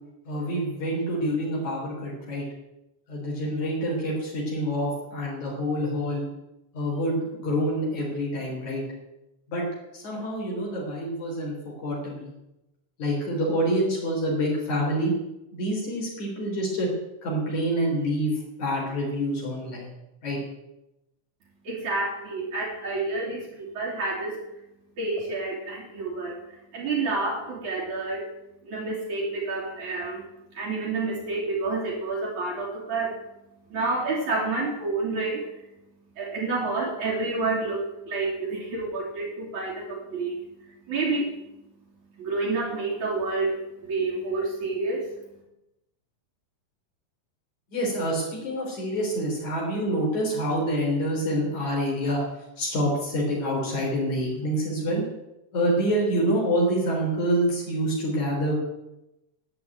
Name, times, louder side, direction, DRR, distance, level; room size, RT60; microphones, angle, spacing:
voice 1, 0.3-2.5 3.1-6.2 6.7-8.8 9.5-9.6 9.9-12.3 13.0-15.1 15.5-16.9 17.2-18.3 18.6-19.9 20.2-20.4 47.7-52.2 52.6-55.0 55.5-58.6, equal, 70° left, -3 dB, 5.1 m, -27 dB
voice 2, 21.7-24.4 25.0-26.4 26.7-28.2 28.7-30.2 30.5-33.2 33.7-35.4 36.2-40.4 40.9-41.3 42.2-45.1, right 3 dB, 70° right, -6 dB, 4.4 m, -29 dB
12.0 x 9.3 x 9.1 m, 0.92 s
omnidirectional pair, 3.5 m